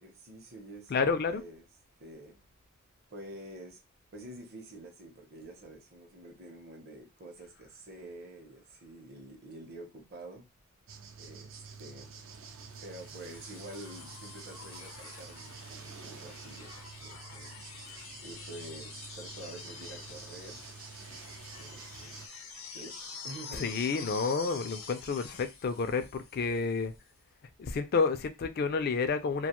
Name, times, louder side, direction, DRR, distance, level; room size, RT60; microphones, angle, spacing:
voice 1, 0.0-1.7 2.0-2.4 3.1-3.8 4.1-10.5 11.2-12.1 12.8-17.7 18.2-20.6 21.6-22.2 22.7-23.0 23.2-24.2, right 1 dB, 50° right, 0.7 m, -48 dB
voice 2, 0.9-1.4 23.5-26.9 27.6-29.5, left 4 dB, 50° left, 0.4 m, -30 dB
sound 1, 10.9-22.3, right 5 dB, 65° right, 0.4 m, -48 dB
sound 2, 12.8-26.8 28.2-28.3, left 5 dB, 80° left, 0.7 m, -47 dB
2.4 x 2.2 x 2.9 m
head